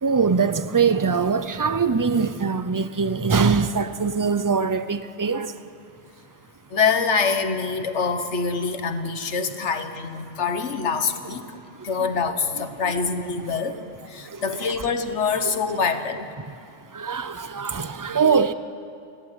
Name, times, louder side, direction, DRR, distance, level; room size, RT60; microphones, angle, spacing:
voice 1, 0.0-5.6 14.2-14.6 16.9-18.5, right 5 dB, 35° right, 0.3 m, -22 dB
voice 2, 6.7-13.8 14.1-16.3, left 5 dB, 65° left, 1.5 m, -25 dB
29.0 x 11.0 x 9.6 m
omnidirectional pair, 1.3 m